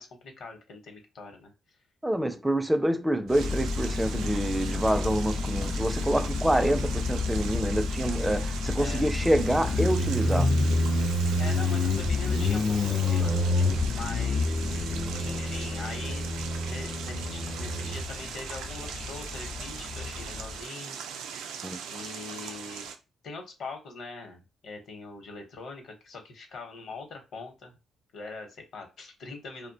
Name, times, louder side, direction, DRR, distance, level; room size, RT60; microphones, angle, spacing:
voice 1, 0.0-1.5 8.8-9.0 11.4-13.3 13.9-14.9 15.2-16.3 16.6-21.0 21.8-22.9 23.2-27.7 28.1-29.7, left 3 dB, 70° left, 0.9 m, -42 dB
voice 2, 2.0-10.5 21.6-21.8, right 1 dB, 10° right, 0.4 m, -27 dB
Motorcycle, 3.3-20.5, left 2 dB, 50° left, 0.5 m, -28 dB
sound 1, 3.3-23.0, right 7 dB, 90° right, 0.4 m, -40 dB
2.4 x 2.1 x 2.7 m
cardioid pair, 90°, 0 cm